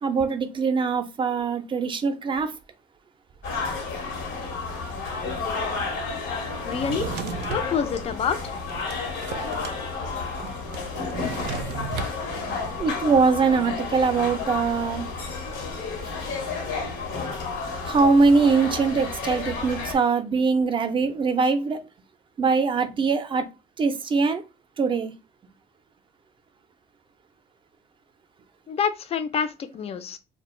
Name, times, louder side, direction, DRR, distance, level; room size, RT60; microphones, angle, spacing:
voice 1, 0.0-2.5 10.8-10.9 12.4-15.1 17.8-21.8 22.4-23.5 23.8-24.4 24.8-25.1, right 4 dB, 30° right, 0.4 m, -22 dB
sound 1, 3.4-19.9, left 4 dB, 85° left, 0.9 m, -31 dB
voice 2, 6.6-7.1 7.5-8.6 28.7-30.2, left 7 dB, 35° left, 0.4 m, -27 dB
Drawer open or close, 6.7-7.7 8.3-9.8 10.0-10.1 10.4-12.2, right 7 dB, 85° right, 0.4 m, -34 dB
2.4 x 2.1 x 3.0 m
cardioid pair, 110°, 17 cm